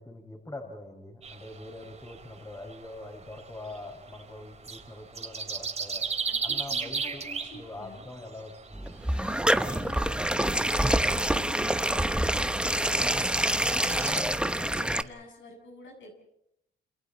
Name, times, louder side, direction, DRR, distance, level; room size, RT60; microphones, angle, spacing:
voice 1, 0.0-6.0 6.4-7.2 7.5-8.9 12.9-13.6 13.9-15.1, left 2 dB, 15° left, 2 dB, 6.3 m, -43 dB
sound 1, 1.2-14.2, right 5 dB, 35° right, 3.5 m, -38 dB
voice 2, 6.3-8.1 9.1-10.8 11.2-12.3 13.7-14.2 14.6-16.1, left 2 dB, 70° left, 2 dB, 7.9 m, -48 dB
sound 2, 8.7-15.0, right 1 dB, 5° right, 1.0 m, -26 dB
28.5 x 28.0 x 4.4 m, 0.81 s
cardioid pair, 90°, 20 cm